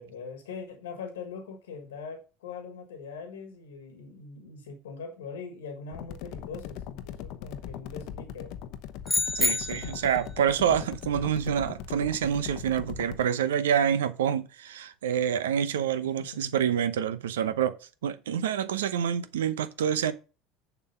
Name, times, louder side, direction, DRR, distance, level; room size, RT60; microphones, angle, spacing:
voice 1, 0.0-8.5 16.3-16.4, left 5 dB, 80° left, 1.5 m, -42 dB
sound 1, 5.9-13.2, left 10 dB, 60° left, 0.8 m, -40 dB
sound 2, 9.1-10.2, left 2 dB, 5° left, 1.1 m, -27 dB
voice 2, 9.3-17.8 18.0-20.1, right 9 dB, 80° right, 0.8 m, -27 dB
7.0 x 6.1 x 5.4 m
hypercardioid pair, 70°, 0 cm